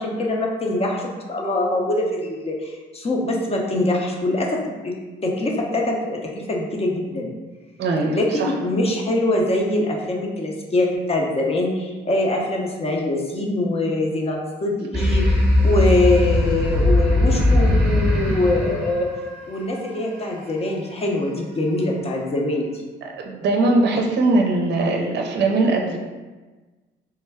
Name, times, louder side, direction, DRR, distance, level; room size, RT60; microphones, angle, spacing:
voice 1, 0.0-4.9 5.2-7.3 8.1-22.8, left 2 dB, 30° left, 0 dB, 0.6 m, -23 dB
voice 2, 7.8-8.5 23.2-26.0, right 2 dB, 60° right, 1 dB, 0.5 m, -20 dB
sound 1, 14.9-19.9, left 1 dB, 10° right, 0.9 m, -19 dB
3.3 x 2.1 x 3.4 m, 1.3 s
cardioid pair, 90°, 20 cm